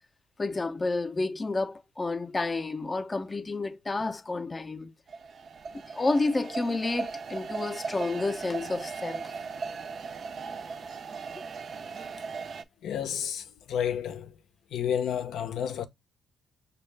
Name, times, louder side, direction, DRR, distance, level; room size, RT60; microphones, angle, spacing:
voice 1, 0.4-4.9 5.7-9.3, left 3 dB, 25° left, 0.5 m, -30 dB
sound 1, 5.1-12.6, right 5 dB, 50° right, 0.4 m, -38 dB
voice 2, 12.8-14.3 14.7-15.9, left 8 dB, 75° left, 0.5 m, -31 dB
5.4 x 2.3 x 3.2 m
cardioid pair, 90°, 0 cm